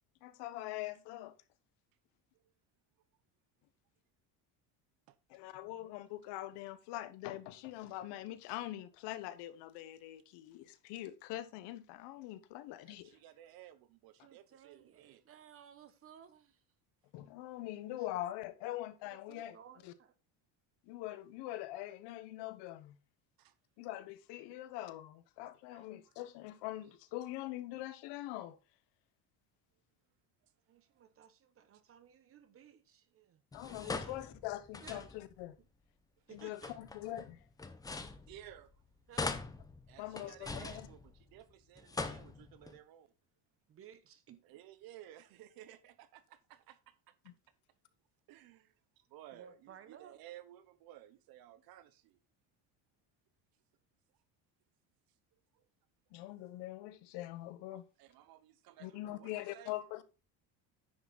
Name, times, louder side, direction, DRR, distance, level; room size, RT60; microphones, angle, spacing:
voice 1, 0.2-1.4 5.3-13.2 17.1-19.6 19.8-19.9 20.8-23.0 23.8-28.6 33.5-35.6 36.3-37.4 40.0-40.7 47.2-47.3 56.1-57.8 58.8-60.0, left 15 dB, 70° left, 1.2 m, -43 dB
voice 2, 12.8-15.2 23.4-23.5 25.7-25.8 33.6-34.1 38.3-38.7 39.9-43.1 44.4-47.1 48.3-52.2 55.5-55.7 57.7-59.7, right 13 dB, 55° right, 0.9 m, -56 dB
voice 3, 14.2-16.6 19.3-20.1 30.7-33.4 34.0-34.2 34.8-35.1 36.3-36.7 39.1-39.4 43.7-44.4 49.3-50.2, right 9 dB, 30° right, 1.0 m, -57 dB
sound 1, 33.5-35.4 36.4-38.7 39.1-41.4 41.8-42.8, left 3 dB, 10° left, 0.6 m, -42 dB
10.0 x 6.0 x 3.9 m
cardioid pair, 165°, 43 cm